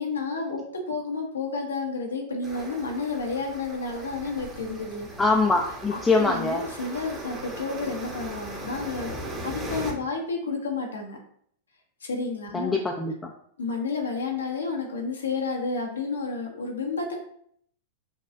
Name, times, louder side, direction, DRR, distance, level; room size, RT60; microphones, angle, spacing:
voice 1, 0.0-5.1 5.9-11.2 12.0-12.8 13.6-17.2, left 4 dB, 85° left, 1 dB, 0.8 m, -31 dB
sound 1, 2.4-9.9, right 1 dB, 20° right, 1.1 m, -38 dB
voice 2, 5.2-6.6 12.5-13.1, left 3 dB, 15° left, 0 dB, 0.5 m, -23 dB
5.4 x 2.3 x 2.5 m, 0.66 s
figure-of-eight pair, 95°, 0 cm